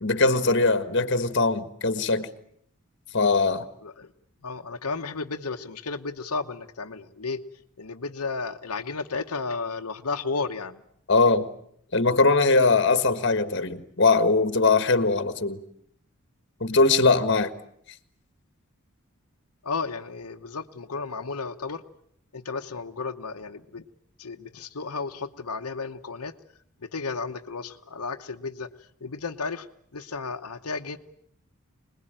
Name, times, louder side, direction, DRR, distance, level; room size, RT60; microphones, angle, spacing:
voice 1, 0.0-2.3 3.1-3.7 11.1-11.5 11.9-15.6 16.6-17.5, left 3 dB, 50° left, 11 dB, 1.6 m, -21 dB
voice 2, 3.8-4.1 4.4-7.4 7.8-10.8 19.6-21.8 22.3-23.8 24.2-26.3 26.8-29.7 29.9-31.0, left 4 dB, 85° left, 5 dB, 1.0 m, -33 dB
26.0 x 20.5 x 8.9 m, 0.67 s
head